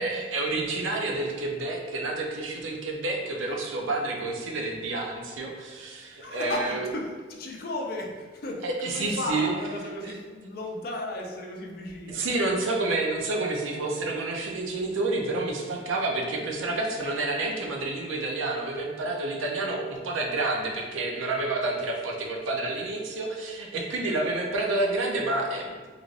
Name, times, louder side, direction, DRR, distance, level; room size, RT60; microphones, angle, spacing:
voice 1, 0.0-6.9 8.6-9.5 10.0-10.1 12.1-25.7, right 2 dB, 90° right, 1 dB, 0.5 m, -29 dB
voice 2, 6.2-12.3 22.6-22.7 24.1-24.4, left 1 dB, 50° left, 0 dB, 0.4 m, -35 dB
3.2 x 2.5 x 2.4 m, 1.5 s
head